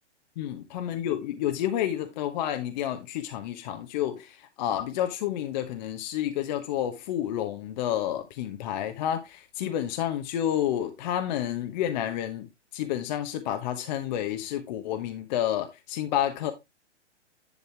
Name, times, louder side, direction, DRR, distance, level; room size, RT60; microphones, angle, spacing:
voice 1, 0.4-12.5 12.7-16.5, left 11 dB, 40° left, 1.2 m, -30 dB
11.0 x 5.5 x 3.4 m
hypercardioid pair, 125°, 35 cm